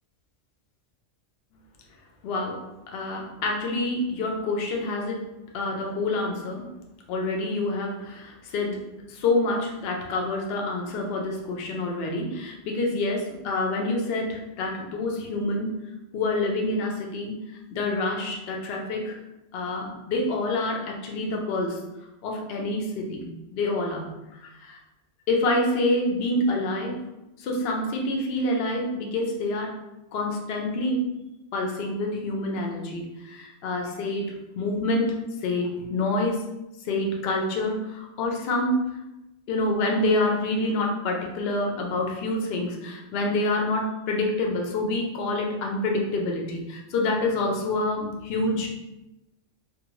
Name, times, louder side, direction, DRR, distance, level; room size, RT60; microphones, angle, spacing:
voice 1, 2.2-2.6 2.9-5.2 5.5-6.6 7.1-8.8 9.1-15.8 16.1-17.4 17.7-19.2 19.5-21.8 22.2-23.3 23.5-24.1 24.6-24.8 25.3-26.9 27.4-29.7 30.1-31.0 31.5-34.3 34.6-35.1 35.4-36.4 36.9-38.8 39.5-48.7, left 2 dB, 65° left, 1 dB, 0.7 m, -27 dB
2.5 x 2.2 x 3.0 m, 0.94 s
omnidirectional pair, 1.3 m